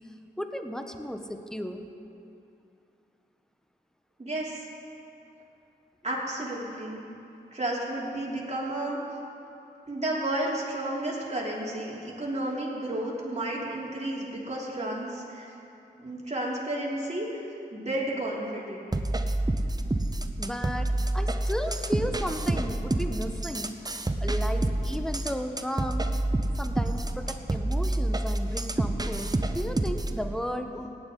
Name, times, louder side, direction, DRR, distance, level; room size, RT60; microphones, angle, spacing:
voice 1, 0.4-1.8 20.4-23.8 24.2-26.1 26.6-30.9, equal, 5° left, 6 dB, 1.1 m, -34 dB
voice 2, 4.2-4.6 6.0-7.0 7.5-9.0 9.9-15.5 16.0-17.5 17.7-18.9, right 1 dB, 35° right, -4 dB, 3.1 m, -32 dB
sound 1, 18.9-30.2, right 1 dB, 20° right, 0.7 m, -28 dB
17.0 x 9.5 x 3.9 m, 2.7 s
cardioid pair, 40°, 19 cm